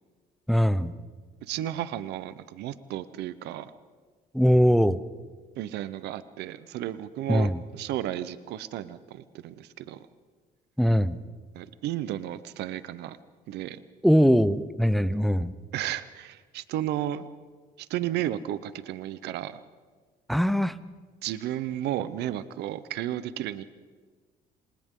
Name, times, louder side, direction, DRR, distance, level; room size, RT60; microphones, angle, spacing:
voice 1, 0.5-0.9 4.3-5.0 7.3-7.6 10.8-11.2 14.0-15.5 20.3-20.7, equal, ahead, 14 dB, 0.7 m, -21 dB
voice 2, 1.4-3.7 5.6-10.1 11.5-13.2 13.5-13.8 15.7-17.3 17.8-19.6 21.2-23.6, right 12 dB, 80° right, 14 dB, 0.8 m, -33 dB
27.5 x 25.0 x 3.8 m, 1.5 s
cardioid pair, 110°, 17 cm